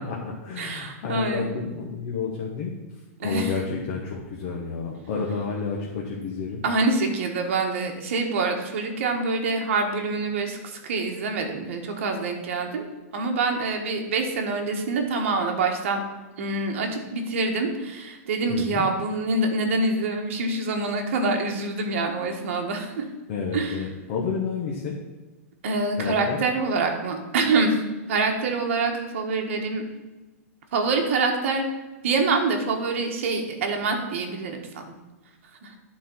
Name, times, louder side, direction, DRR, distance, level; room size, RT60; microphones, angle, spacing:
voice 1, 0.1-2.7 3.2-6.6 18.5-18.9 23.3-25.0 26.0-26.4, left 5 dB, 35° left, -2 dB, 1.1 m, -30 dB
voice 2, 0.6-1.6 3.2-3.5 6.6-16.0 16.4-23.0 23.5-23.9 25.6-27.8 28.1-29.8 30.7-31.7 32.0-35.0 35.6-35.7, right 3 dB, 55° right, 3 dB, 1.5 m, -26 dB
11.0 x 4.3 x 5.6 m, 1.2 s
supercardioid pair, 175°, 8 cm